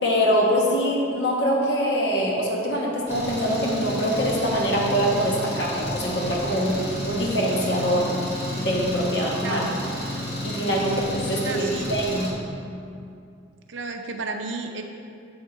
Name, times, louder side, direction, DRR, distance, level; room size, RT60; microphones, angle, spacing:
voice 1, 0.0-8.1 8.6-9.7 10.4-12.3, equal, 60° left, -3 dB, 1.2 m, -24 dB
Engine, 3.1-12.3, left 1 dB, 30° left, 1.4 m, -31 dB
voice 2, 9.4-9.8 11.4-11.9 13.7-14.8, right 3 dB, 70° right, 5 dB, 0.5 m, -32 dB
8.0 x 3.6 x 4.8 m, 2.5 s
head